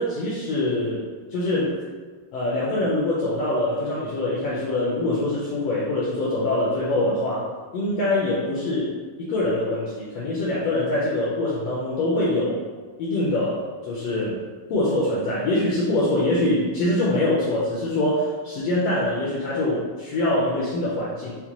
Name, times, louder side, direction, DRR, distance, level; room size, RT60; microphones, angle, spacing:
voice 1, 0.0-1.7 2.3-7.5 7.7-8.9 9.2-12.6 13.0-14.4 14.7-21.3, left 1 dB, 80° left, -6 dB, 1.4 m, -24 dB
5.6 x 2.1 x 2.9 m, 1.4 s
omnidirectional pair, 3.5 m